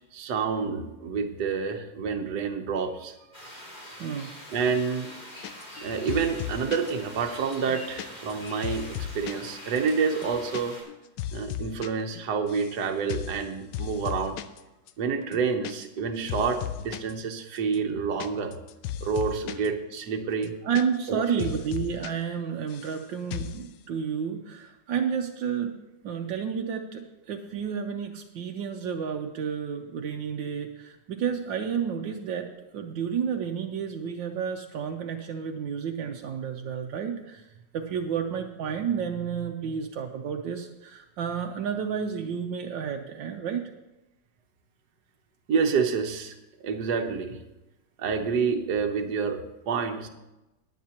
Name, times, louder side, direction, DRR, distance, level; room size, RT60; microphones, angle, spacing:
voice 1, 0.1-3.5 4.5-5.1 5.8-10.8 11.3-14.4 15.0-18.5 19.0-20.5 21.1-21.5 45.5-47.4 48.0-50.1, right 5 dB, 65° right, 4 dB, 1.6 m, -28 dB
sound 1, 3.3-10.8, equal, 20° left, 4.2 m, -44 dB
sound 2, 5.4-5.8 6.1-6.9 7.3-9.5 9.8-9.9 10.1-10.6 10.9-11.9 12.2-12.8 13.1-13.4 13.7-14.6 14.9-15.0 15.2-16.0 16.3-17.1 17.6-19.7 20.0-20.1 20.3-21.1 21.4-22.1 22.4-23.0 23.3-23.6, left 11 dB, 75° left, 1.2 m, -36 dB
voice 2, 20.6-25.8 26.0-32.5 32.7-37.4 37.7-43.6, right 7 dB, 80° right, 3 dB, 1.5 m, -31 dB
20.0 x 8.4 x 2.9 m, 0.97 s
omnidirectional pair, 2.0 m